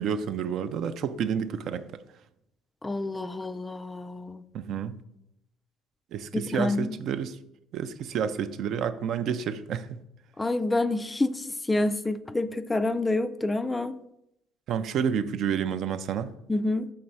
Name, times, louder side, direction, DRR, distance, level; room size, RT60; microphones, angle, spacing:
voice 1, 0.0-2.0 4.5-5.0 6.1-7.4 7.7-10.0 14.7-16.3, right 7 dB, 60° right, 0.4 m, -29 dB
voice 2, 2.8-4.4 6.3-7.0 10.4-14.0 16.5-16.9, left 2 dB, 15° left, 0.3 m, -28 dB
5.8 x 3.2 x 5.4 m
cardioid pair, 105°, 0 cm